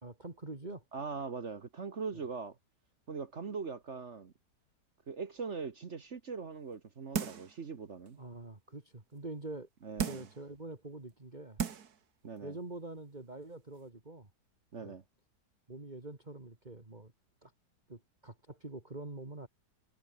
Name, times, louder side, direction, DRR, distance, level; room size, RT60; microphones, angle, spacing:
voice 1, 0.0-0.8 2.1-2.2 8.2-9.7 10.0-11.6 12.4-14.3 14.8-14.9 15.7-17.1 17.4-17.5 17.9-19.5, right 2 dB, 25° right, 3.0 m, -45 dB
voice 2, 0.9-2.5 3.1-4.3 5.1-8.2 9.8-10.3 12.2-12.6 14.7-15.0, right 5 dB, 45° right, 1.6 m, -41 dB
sound 1, 7.1-7.6 8.1-8.2 10.0-10.4 11.1-11.2 11.6-12.0 12.4-12.5, right 7 dB, 70° right, 2.0 m, -35 dB
omnidirectional pair, 1.7 m